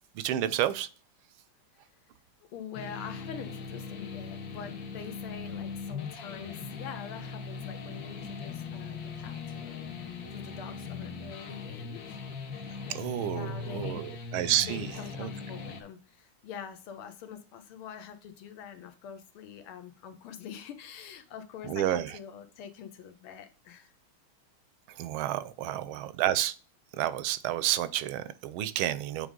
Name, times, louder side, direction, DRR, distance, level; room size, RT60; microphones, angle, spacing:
voice 1, 0.2-0.9 12.9-14.9 15.2-15.3 21.7-22.1 25.0-26.5 27.0-29.3, right 12 dB, 80° right, 1.4 m, -30 dB
voice 2, 2.5-9.9 10.3-12.2 12.8-14.1 14.6-23.9 25.6-26.1, left 8 dB, 85° left, 1.8 m, -45 dB
sound 1, 2.7-15.8, left 5 dB, 55° left, 1.4 m, -40 dB
8.5 x 3.5 x 3.7 m
omnidirectional pair, 2.3 m